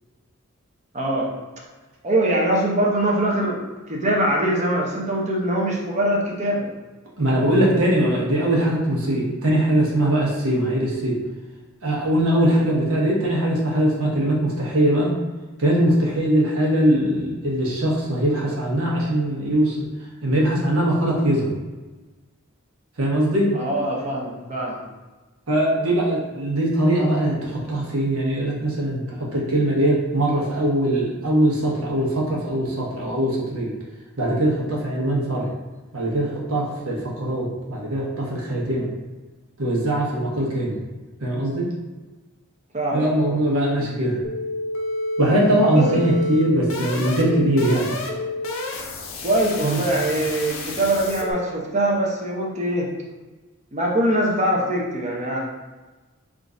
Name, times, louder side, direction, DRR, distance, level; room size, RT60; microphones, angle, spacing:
voice 1, 0.9-1.3 2.0-3.6 3.9-6.7 23.5-24.8 42.7-43.4 45.6-46.0 49.2-52.9 53.7-55.4, right 1 dB, 35° right, -2 dB, 0.7 m, -23 dB
voice 2, 7.2-11.2 11.8-15.2 15.6-19.9 20.2-21.5 23.0-23.5 25.5-33.7 34.2-35.5 35.9-38.9 39.6-40.8 41.2-41.7 42.9-44.2 45.2-47.9 49.6-49.8, right 1 dB, 75° right, -3 dB, 1.1 m, -21 dB
sound 1, 44.2-51.3, left 1 dB, 65° left, 0.6 m, -29 dB
3.7 x 2.5 x 3.8 m, 1.2 s
head